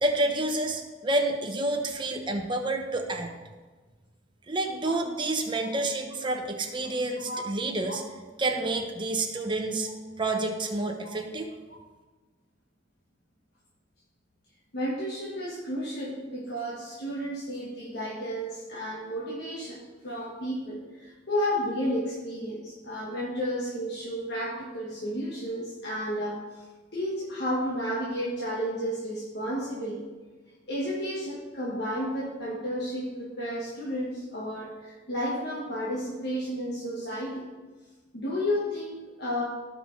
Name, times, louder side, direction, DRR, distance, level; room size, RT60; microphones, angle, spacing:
voice 1, 0.0-3.3 4.5-8.0 8.4-9.9 10.2-11.5, right 2 dB, 25° right, 3 dB, 1.0 m, -29 dB
voice 2, 14.7-26.6 26.9-30.0 30.7-37.5 38.1-39.4, equal, 60° left, -6 dB, 1.6 m, -32 dB
15.5 x 5.5 x 3.3 m, 1.3 s
head